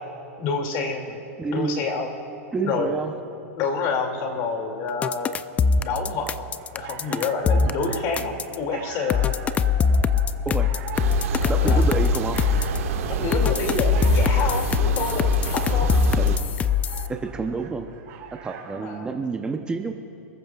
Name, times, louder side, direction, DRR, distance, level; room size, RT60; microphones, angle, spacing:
voice 1, 0.4-1.2 1.5-2.1 2.6-2.9 3.5-5.4 5.7-6.5 6.7-9.3 11.4-11.8 13.0-16.0 18.7-19.1, left 4 dB, 40° left, 3 dB, 2.4 m, -28 dB
voice 2, 1.4-1.8 2.5-3.1 10.5-10.7 11.5-12.4 15.8-16.3 17.1-17.9 18.4-19.9, right 4 dB, 10° right, 4 dB, 0.7 m, -29 dB
sound 1, 5.0-8.6 9.1-12.8 13.3-17.1, left 6 dB, 15° left, 0.4 m, -22 dB
Dogs Howling Barking, 6.6-19.0, right 7 dB, 45° right, 3.9 m, -41 dB
sound 2, 10.9-16.4, right 6 dB, 70° right, 1.7 m, -27 dB
28.0 x 14.5 x 2.4 m, 2.7 s
hypercardioid pair, 135°, 8 cm